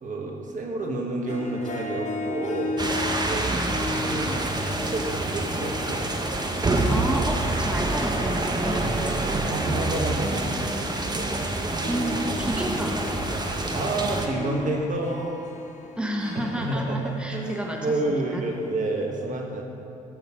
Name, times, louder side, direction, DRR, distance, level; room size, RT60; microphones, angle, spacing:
voice 1, 0.0-2.8 3.2-6.0 8.6-8.8 9.2-11.3 13.7-15.4 16.5-19.6, right 2 dB, 45° right, 0 dB, 1.6 m, -30 dB
Harp, 1.3-18.9, left 3 dB, 40° left, 1.0 m, -37 dB
sound 1, 2.8-14.3, right 2 dB, 25° right, 1.2 m, -27 dB
voice 2, 3.5-3.8 6.9-8.9 11.9-13.0 16.0-18.4, right 1 dB, 5° right, 0 dB, 1.3 m, -31 dB
13.5 x 7.8 x 3.9 m, 2.7 s
hypercardioid pair, 50°, 18 cm